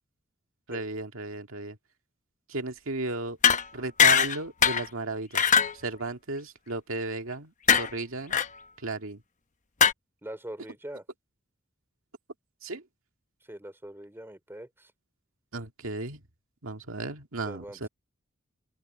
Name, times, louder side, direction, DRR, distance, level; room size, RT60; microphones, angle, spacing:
voice 1, 0.7-1.8 2.5-3.4 3.7-8.4 8.8-9.2 12.6-12.9 15.5-16.2 16.6-17.9, right 2 dB, 75° right, 2.1 m, -35 dB
sound 1, 3.4-3.6 4.0-4.4 4.6-4.9 5.3-5.7 7.7-7.9 8.3-8.5 9.8-9.9, left 7 dB, 40° left, 0.9 m, -20 dB
voice 2, 10.2-11.0 13.4-14.9 17.4-17.9, right 1 dB, 10° right, 3.3 m, -42 dB
open air
head